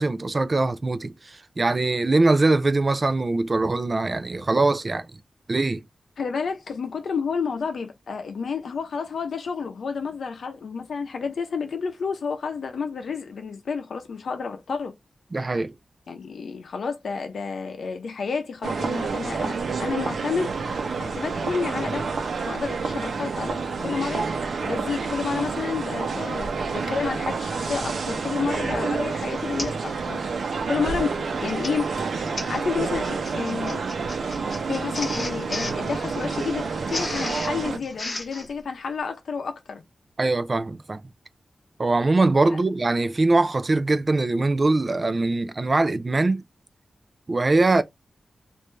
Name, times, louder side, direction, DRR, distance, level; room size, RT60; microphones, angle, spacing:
voice 1, 0.0-5.1 5.5-5.8 15.3-15.7 40.2-41.0 41.8-46.4 47.3-47.8, right 2 dB, 30° right, 0.4 m, -22 dB
voice 2, 6.2-14.9 16.1-20.5 21.0-22.1 22.5-24.3 24.6-30.2 30.7-31.9 32.5-33.8 34.7-39.8 42.5-42.6, left 5 dB, 75° left, 0.6 m, -30 dB
sound 1, 18.6-37.8, right 4 dB, 70° right, 0.8 m, -29 dB
Printer, 27.6-27.9 28.5-28.7 29.0-29.1 29.6-29.9 30.2-30.5 31.2-38.5, left 2 dB, 40° left, 1.1 m, -35 dB
3.2 x 2.6 x 3.2 m
wide cardioid pair, 175°, 0 cm